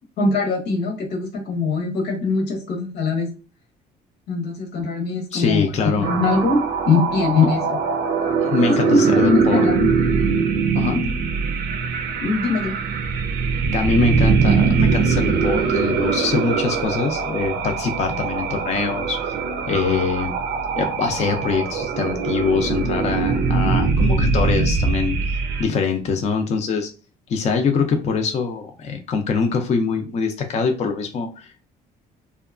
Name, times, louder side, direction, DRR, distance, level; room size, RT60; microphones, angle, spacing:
voice 1, 0.2-3.3 4.3-5.7 6.0-6.6 6.9-7.8 8.6-9.9 12.2-12.8, left 4 dB, 85° left, 3 dB, 0.9 m, -22 dB
voice 2, 5.3-6.1 8.4-9.7 10.7-11.0 13.7-19.4 19.7-20.3 20.8-25.2 25.6-26.9 27.3-31.7, left 5 dB, 40° left, 4 dB, 0.4 m, -23 dB
sound 1, 6.0-25.6, right 5 dB, 85° right, 0.6 m, -22 dB
2.7 x 2.3 x 2.4 m, 0.34 s
cardioid pair, 110°, 17 cm